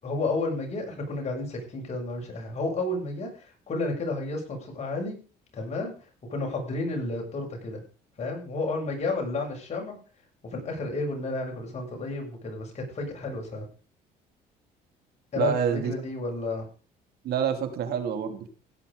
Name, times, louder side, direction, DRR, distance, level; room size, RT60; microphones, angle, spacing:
voice 1, 0.0-5.2 5.5-5.9 6.3-7.8 8.2-10.0 10.5-13.6 15.3-16.7, left 2 dB, 40° left, 1 dB, 7.3 m, -31 dB
voice 2, 15.4-15.9 17.2-18.5, right 8 dB, 70° right, 7 dB, 2.8 m, -27 dB
16.5 x 10.0 x 5.1 m, 0.38 s
cardioid pair, 110°, 17 cm